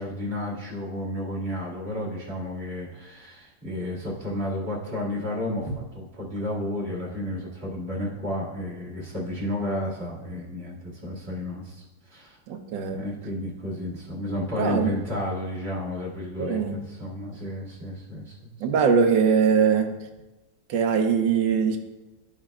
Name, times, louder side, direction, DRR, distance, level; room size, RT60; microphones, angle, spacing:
voice 1, 0.0-11.8 12.1-12.4 12.9-18.5, left 1 dB, 35° right, -6 dB, 2.4 m, -32 dB
voice 2, 12.5-13.0 14.6-14.9 16.4-16.8 18.6-19.9 20.7-21.8, right 6 dB, 75° right, 6 dB, 1.4 m, -22 dB
13.5 x 5.4 x 2.3 m, 1.1 s
omnidirectional pair, 2.0 m